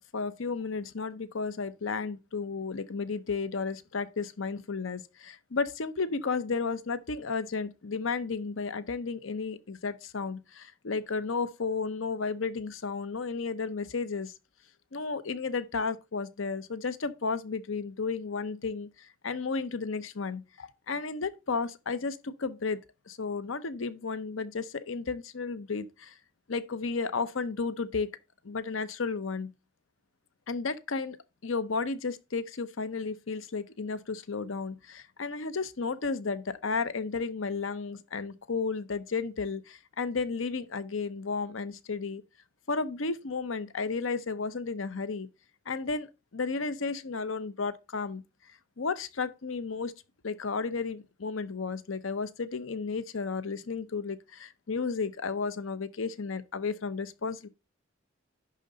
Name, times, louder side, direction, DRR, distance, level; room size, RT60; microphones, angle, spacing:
voice 1, 0.1-14.3 14.9-18.9 19.2-22.8 23.1-26.1 26.5-28.1 28.4-29.5 30.5-31.2 31.4-42.2 42.7-45.3 45.7-46.1 46.3-48.2 48.8-49.9 50.2-57.5, left 4 dB, 75° left, 0.7 m, -33 dB
11.0 x 3.8 x 5.2 m
head